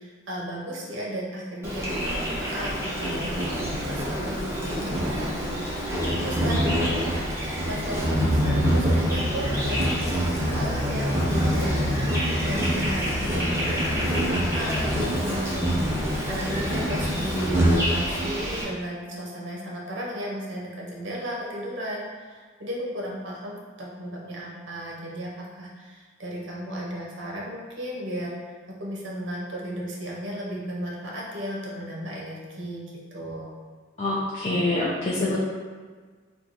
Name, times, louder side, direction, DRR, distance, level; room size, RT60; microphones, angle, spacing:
voice 1, 0.0-7.0 7.7-28.5 28.8-33.5, equal, 60° right, -3 dB, 0.8 m, -35 dB
Insect, 1.6-18.6, equal, 15° right, 0.6 m, -25 dB
voice 2, 34.0-35.4, left 2 dB, 30° left, -8 dB, 0.5 m, -25 dB
2.9 x 2.2 x 3.9 m, 1.5 s
head